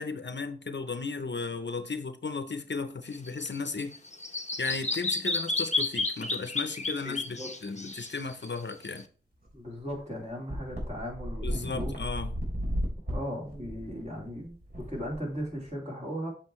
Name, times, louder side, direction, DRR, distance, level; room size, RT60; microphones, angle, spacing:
voice 1, 0.0-3.9 4.6-9.0 11.4-12.3, left 4 dB, 65° left, 0.7 m, -35 dB
Bird vocalization bird call bird song, 3.1-9.0, left 3 dB, 35° left, 0.8 m, -32 dB
voice 2, 7.0-7.5 9.5-11.9 13.1-16.3, equal, 35° right, 3.9 m, -37 dB
sound 1, 9.5-9.6 9.9-10.0 10.5-15.7, equal, 50° right, 3.3 m, -34 dB
7.5 x 6.6 x 3.1 m
wide cardioid pair, 60°, 20 cm